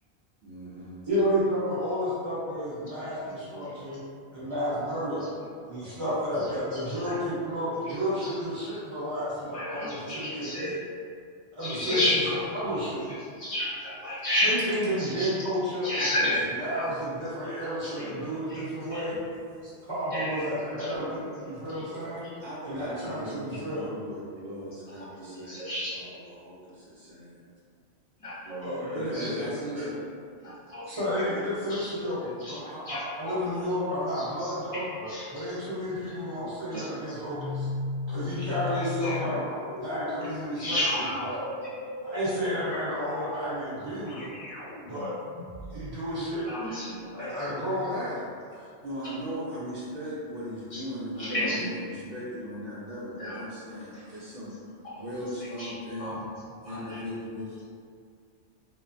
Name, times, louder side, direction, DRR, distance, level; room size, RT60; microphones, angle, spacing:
voice 1, 0.4-1.0 22.4-25.6 25.9-27.4 28.9-30.0 48.5-57.6, equal, 60° right, -8 dB, 0.7 m, -38 dB
voice 2, 1.1-4.0 4.3-5.2 5.6-10.6 11.5-13.0 14.4-19.2 19.6-22.2 22.6-23.9 28.6-29.5 29.7-29.9 30.9-34.8 35.3-37.7 38.1-39.4 39.8-40.8 41.2-41.4 42.0-44.3 44.8-45.1 45.7-46.5 47.1-48.2, equal, 25° right, -11 dB, 0.9 m, -31 dB
voice 3, 9.5-10.8 11.6-12.5 13.4-14.5 15.0-15.3 15.8-16.4 16.7-16.9 17.8-18.6 18.9-19.0 20.1-20.4 20.8-21.3 22.7-22.8 25.0-26.0 28.2-28.7 29.1-29.3 30.7-30.8 31.7-32.1 32.4-33.4 34.1-35.3 36.7-37.1 38.7-39.2 40.5-41.2 41.6-41.7 46.4-47.3 50.7-50.8 51.2-51.7 53.2-53.4 55.0-55.1 55.6-55.7 56.0-56.2 56.6-57.0, left 1 dB, 40° left, -8 dB, 0.5 m, -32 dB
sound 1, 37.3-45.9, left 2 dB, 65° left, 1.0 m, -37 dB
2.9 x 2.1 x 2.5 m, 2.2 s
omnidirectional pair, 1.2 m